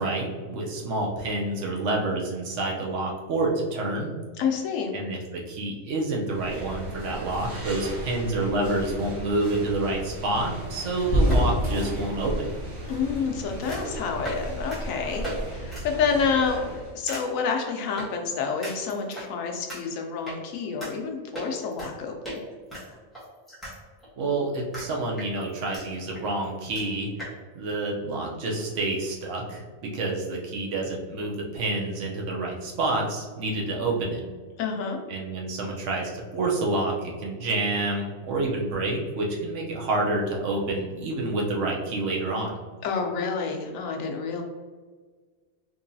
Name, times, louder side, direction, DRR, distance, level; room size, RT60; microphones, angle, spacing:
voice 1, 0.0-4.1 4.9-12.5 24.2-27.1 27.5-34.2 35.1-42.6, right 2 dB, 70° right, -1 dB, 1.0 m, -28 dB
voice 2, 4.4-4.9 12.9-16.6 16.9-22.4 34.6-35.0 42.8-44.4, left 5 dB, 85° left, 3 dB, 1.0 m, -28 dB
sound 1, 6.2-17.0, equal, 45° right, 0.9 m, -37 dB
sound 2, 11.1-12.4 13.7-13.9 14.2-14.4 14.7-14.8 15.2-15.4 15.7-15.8 16.2-16.5 17.1-17.2 18.0-18.1 18.6-19.3 19.7-19.8 20.2-20.4 20.8-20.9 21.3-21.9 22.2-22.4 22.7-23.7 24.0-24.1 24.7-24.9 25.2-25.8 26.1-26.2 26.4-26.5 26.7-26.8 27.2-27.3, equal, ahead, 1.3 m, -29 dB
3.7 x 3.0 x 2.6 m, 1.5 s
omnidirectional pair, 1.3 m